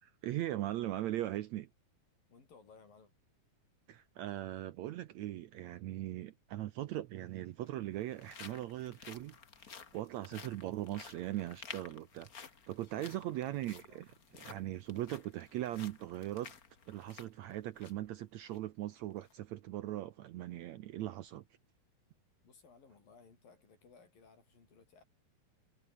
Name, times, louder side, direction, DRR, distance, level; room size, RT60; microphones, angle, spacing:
voice 1, 0.0-1.7 3.9-14.1 14.4-16.5 16.9-21.4, right 14 dB, 75° right, 1.7 m, -40 dB
voice 2, 2.3-3.1 13.2-14.0 22.4-25.0, left 5 dB, 80° left, 7.6 m, -61 dB
sound 1, 6.5-6.6 7.5-18.1 18.5-18.6 19.1-19.3, left 6 dB, 40° left, 1.4 m, -53 dB
omnidirectional pair, 4.0 m